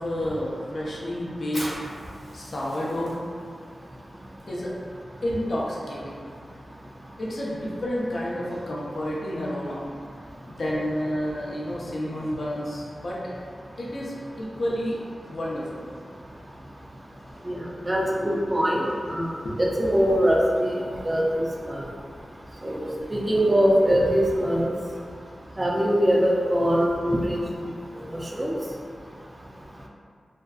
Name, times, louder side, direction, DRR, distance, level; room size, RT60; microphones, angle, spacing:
voice 1, 0.0-1.9 2.3-3.1 4.5-4.7 5.2-6.2 7.2-9.9 10.5-13.2 13.8-15.0 15.3-15.9 17.3-17.4 18.2-18.4 19.4-19.6, equal, 65° left, -5 dB, 0.5 m, -30 dB
Fire, 1.4-8.6, equal, 40° left, 0.9 m, -45 dB
voice 2, 17.4-18.0 18.5-18.8 19.1-19.3 19.6-20.7 21.0-21.8 22.6-24.7 25.6-27.7 28.4-28.5, equal, 30° right, -3 dB, 0.4 m, -22 dB
2.5 x 2.3 x 2.3 m, 2.2 s
cardioid pair, 50°, 0 cm